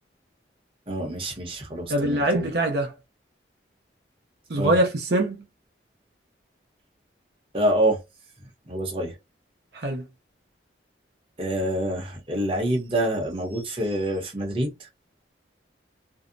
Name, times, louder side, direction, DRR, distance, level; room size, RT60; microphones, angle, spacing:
voice 1, 0.9-2.5 4.6-4.8 7.5-8.0 8.7-9.2 11.4-14.9, right 1 dB, 30° right, 0.8 m, -26 dB
voice 2, 1.9-2.9 4.5-5.5 9.7-10.0, right 1 dB, 65° right, 0.6 m, -23 dB
2.7 x 2.0 x 2.5 m
head